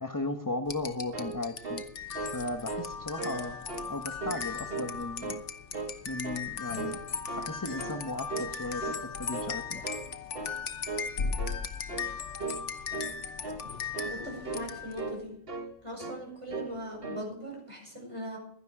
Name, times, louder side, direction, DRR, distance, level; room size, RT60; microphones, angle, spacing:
voice 1, 0.0-1.8 2.3-3.6 3.9-5.4 6.0-7.0 7.4-9.8, left 2 dB, 20° left, 6 dB, 0.9 m, -36 dB
sound 1, 0.7-15.1, left 6 dB, 85° left, 1.4 m, -37 dB
sound 2, 0.9-2.4 2.7-2.9 3.2-3.9 4.2-4.9 5.2-6.0 6.2-6.5 6.8-7.5 7.8-8.0 8.3-8.6 8.8-9.6 9.8-10.1 10.3-10.6 10.9-11.1 11.4-11.6 11.9-12.1 12.4-12.6 12.9-13.1 13.4-13.6 13.9-14.2 14.4-14.7 15.0-15.7 16.0-16.2 16.5-16.8 17.0-17.3, right 3 dB, 55° right, 1.7 m, -37 dB
voice 2, 14.0-15.4 15.8-18.4, equal, 25° right, 0 dB, 5.7 m, -40 dB
16.0 x 12.0 x 4.8 m, 0.69 s
omnidirectional pair, 1.2 m